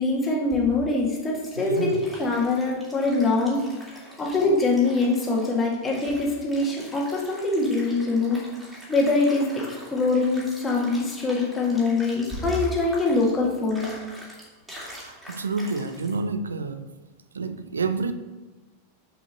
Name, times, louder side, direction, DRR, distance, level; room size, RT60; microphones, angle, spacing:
voice 1, 0.0-3.6 4.2-8.4 8.9-13.9, left 3 dB, 15° left, -2 dB, 2.1 m, -23 dB
sound 1, 1.3-16.2, equal, 5° right, 2.8 m, -44 dB
voice 2, 1.6-2.1 14.9-16.9 17.3-18.1, right 4 dB, 75° right, 11 dB, 0.5 m, -29 dB
6.8 x 5.4 x 5.3 m, 1.2 s
figure-of-eight pair, 90°, 0 cm